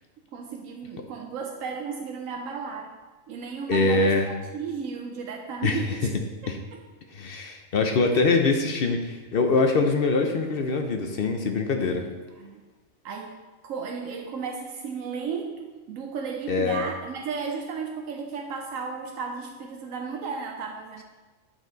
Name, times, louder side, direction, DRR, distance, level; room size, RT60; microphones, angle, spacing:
voice 1, 0.3-2.9 3.3-6.1 6.4-6.8 8.1-8.2 11.8-12.1 12.4-12.6 13.0-21.0, right 5 dB, 90° right, 1 dB, 1.1 m, -34 dB
voice 2, 3.7-4.3 5.6-5.8 6.5-6.6 7.1-12.1 16.5-16.8, left 3 dB, 55° left, 4 dB, 0.7 m, -23 dB
9.0 x 4.3 x 3.9 m, 1.2 s
omnidirectional pair, 1.4 m